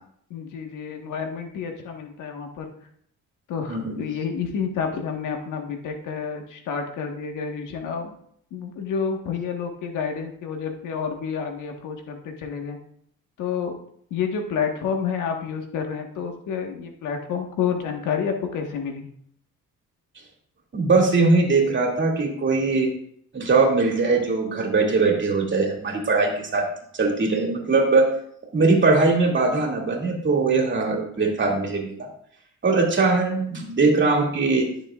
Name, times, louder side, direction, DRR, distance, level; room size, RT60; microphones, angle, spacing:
voice 1, 0.3-2.7 3.5-8.1 8.5-12.8 13.4-13.8 14.1-19.1, left 6 dB, 85° left, 3 dB, 1.5 m, -29 dB
voice 2, 20.7-22.9 23.3-26.7 26.9-28.1 28.5-32.1 32.6-34.7, right 3 dB, 40° right, 0 dB, 2.4 m, -21 dB
13.0 x 6.8 x 2.4 m, 0.67 s
cardioid pair, 90°, 30 cm